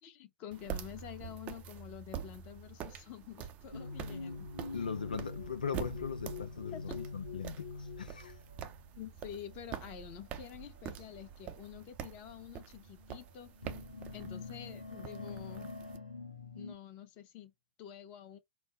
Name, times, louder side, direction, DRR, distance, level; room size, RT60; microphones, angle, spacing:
voice 1, 0.0-4.9 6.7-7.0 8.9-13.5 14.1-15.7 16.5-17.5 17.8-18.4, left 10 dB, 35° left, 1.1 m, -48 dB
sound 1, 0.5-16.0, right 9 dB, 30° right, 0.6 m, -46 dB
sound 2, 3.7-8.9 9.7-10.0 11.1-11.2 12.0-12.1 12.8-13.2 13.5-16.8, left 4 dB, 90° left, 1.1 m, -45 dB
voice 2, 4.7-8.4, left 6 dB, 70° left, 0.6 m, -40 dB
4.5 x 2.1 x 3.9 m
figure-of-eight pair, 110°, 5 cm